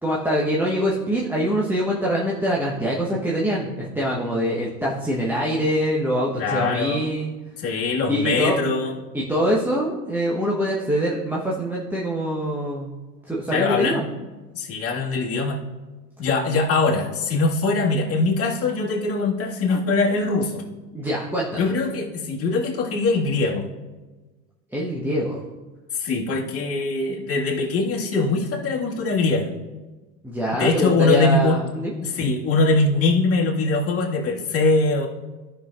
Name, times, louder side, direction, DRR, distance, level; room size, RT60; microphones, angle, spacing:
voice 1, 0.0-7.3 8.1-8.6 9.1-12.9 13.3-14.0 20.9-21.7 24.7-25.4 30.2-31.9, equal, 5° right, -5 dB, 1.1 m, -24 dB
voice 2, 6.4-7.0 7.6-8.9 13.5-14.0 14.5-15.6 16.2-20.6 21.6-23.6 25.9-29.5 30.5-31.6 32.0-35.1, left 3 dB, 25° left, -4 dB, 1.9 m, -22 dB
15.0 x 5.6 x 2.5 m, 1.3 s
hypercardioid pair, 85°, 50 cm